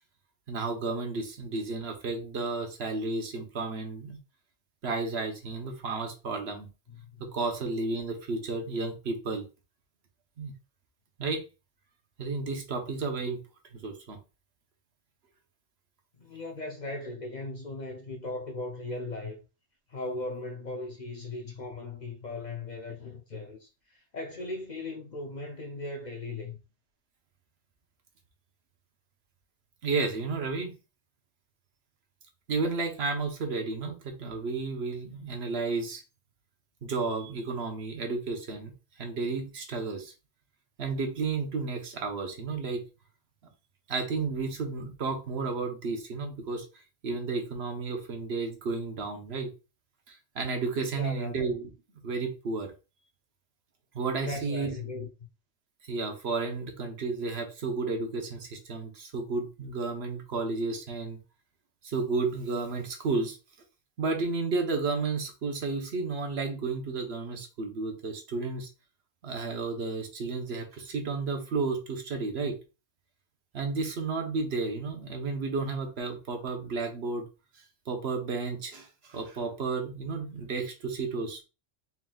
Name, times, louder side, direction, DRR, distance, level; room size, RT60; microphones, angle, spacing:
voice 1, 0.5-4.2 4.8-6.7 7.2-9.4 10.4-10.5 11.2-11.4 12.2-13.4 13.7-14.2 29.8-30.7 32.5-36.0 36.8-38.7 39.0-40.1 40.8-42.8 43.9-46.7 47.0-49.5 50.1-51.7 52.0-52.7 53.9-54.8 55.9-61.2 61.8-63.4 64.0-68.7 69.2-72.6 73.5-77.2 77.9-81.4, right 4 dB, 65° right, 1.1 m, -32 dB
voice 2, 16.2-19.4 19.9-26.6 50.9-51.4 54.2-55.1, left 2 dB, 50° left, 0.7 m, -38 dB
4.3 x 3.8 x 2.3 m
omnidirectional pair, 1.2 m